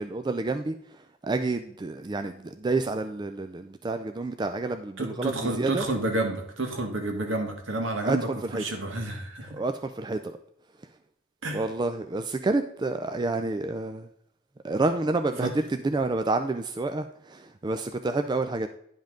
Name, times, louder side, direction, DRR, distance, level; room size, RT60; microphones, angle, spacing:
voice 1, 0.0-5.8 8.0-8.6 9.5-10.4 11.5-14.1 14.6-18.7, right 2 dB, 20° right, 0.3 m, -29 dB
voice 2, 5.0-9.6 11.4-11.7 15.4-15.6, right 2 dB, 70° right, 1.7 m, -30 dB
10.5 x 5.4 x 3.7 m
head